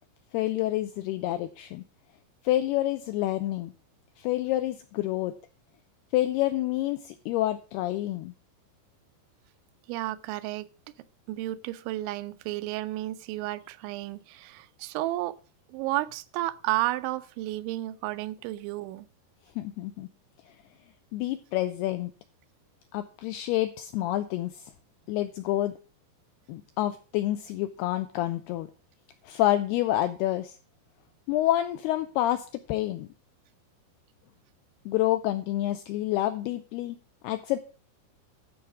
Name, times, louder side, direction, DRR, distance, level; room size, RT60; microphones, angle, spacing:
voice 1, 0.3-1.8 2.4-3.7 4.2-5.3 6.1-8.3 19.6-20.1 21.1-22.1 22.9-24.7 25.1-25.8 26.5-28.7 29.2-30.6 31.3-33.1 34.9-37.0 37.2-37.6, left 14 dB, 85° left, 2.3 m, -28 dB
voice 2, 9.9-10.7 11.3-15.4 15.7-19.1, right 16 dB, 85° right, 3.0 m, -32 dB
12.5 x 4.9 x 7.1 m
omnidirectional pair, 5.3 m